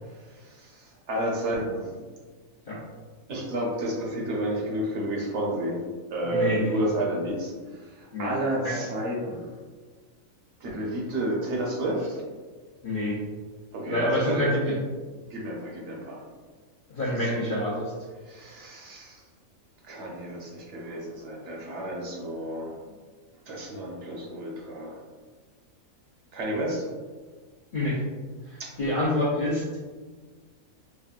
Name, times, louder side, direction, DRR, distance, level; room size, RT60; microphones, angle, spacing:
voice 1, 0.1-1.9 3.3-5.8 6.1-9.5 10.6-12.2 13.7-14.8 15.3-16.2 17.1-17.5 18.2-19.2 19.8-22.7 23.5-25.0 26.3-26.9 28.6-28.7, right 1 dB, 60° right, -3 dB, 1.1 m, -31 dB
voice 2, 6.3-6.8 8.1-8.3 8.6-8.8 12.8-13.2 13.9-14.7 16.9-17.9 27.7-28.0 28.8-29.6, left 1 dB, 45° left, -8 dB, 0.8 m, -26 dB
5.1 x 2.3 x 2.4 m, 1.4 s
omnidirectional pair, 1.4 m